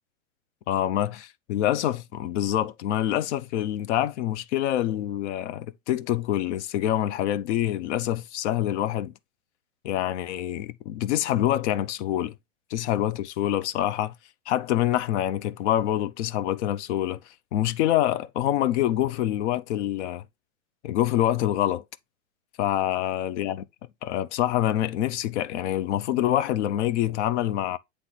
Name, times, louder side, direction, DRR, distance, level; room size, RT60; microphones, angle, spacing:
voice 1, 0.7-9.1 9.8-12.4 12.7-14.1 14.5-17.2 17.5-20.2 20.8-21.8 22.6-23.6 24.0-27.8, left 12 dB, 60° left, 0.7 m, -26 dB
8.1 x 3.3 x 3.9 m
hypercardioid pair, 115°, 39 cm